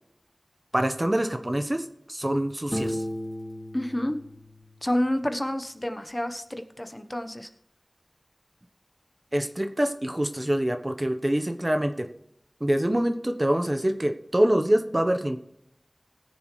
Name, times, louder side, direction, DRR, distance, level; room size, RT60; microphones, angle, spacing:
voice 1, 0.7-3.0 9.3-12.1 12.6-15.4, right 1 dB, 35° right, 7 dB, 1.0 m, -25 dB
Piano, 2.7-5.5, equal, 10° right, 2.9 m, -35 dB
voice 2, 3.7-4.2 4.8-7.5, left 1 dB, 25° left, 8 dB, 1.0 m, -29 dB
19.5 x 7.0 x 3.3 m, 0.76 s
wide cardioid pair, 40°, 0 cm